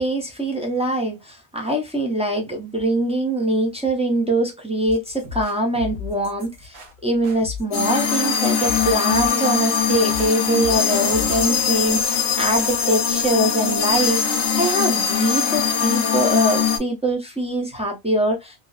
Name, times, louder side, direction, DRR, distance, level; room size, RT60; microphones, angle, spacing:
voice 1, 0.0-18.6, right 1 dB, 10° right, 0.4 m, -23 dB
sound 1, 4.9-12.7, left 5 dB, 75° right, 1.0 m, -36 dB
sound 2, 7.7-16.8, left 7 dB, 80° left, 0.9 m, -21 dB
2.7 x 2.0 x 2.3 m
omnidirectional pair, 1.1 m